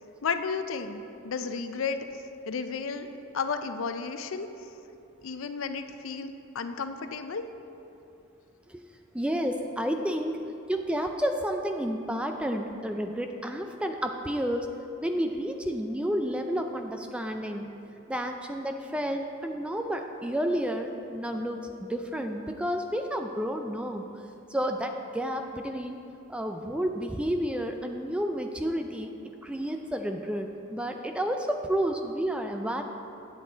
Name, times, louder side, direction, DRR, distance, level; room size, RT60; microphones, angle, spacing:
voice 1, 0.2-2.0 2.5-3.1 3.3-4.5 5.2-7.4, left 5 dB, 70° left, 9 dB, 0.4 m, -33 dB
voice 2, 9.1-10.4 10.7-14.7 15.0-17.7 18.1-24.0 24.5-26.0 26.3-32.8, equal, 5° right, 4 dB, 0.3 m, -31 dB
8.9 x 8.1 x 3.9 m, 2.8 s
head